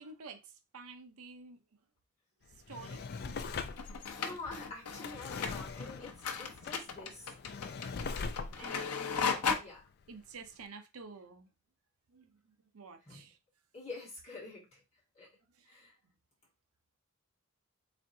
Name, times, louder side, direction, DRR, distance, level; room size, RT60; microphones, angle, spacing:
voice 1, 0.0-1.6 2.7-3.0 8.6-9.0 10.1-11.5 12.1-13.4 15.6-15.7, right 4 dB, 75° right, 0.7 m, -50 dB
Drawer open or close, 2.5-10.2 10.6-10.7, left 4 dB, 45° left, 0.4 m, -42 dB
sound 1, 3.8-9.6, left 6 dB, 90° left, 0.8 m, -36 dB
voice 2, 4.0-7.3 8.6-8.9 9.6-9.8 13.1-13.3 13.7-14.8 15.1-15.3 15.7-16.0, left 3 dB, 30° left, 1.9 m, -47 dB
4.4 x 3.5 x 2.7 m
head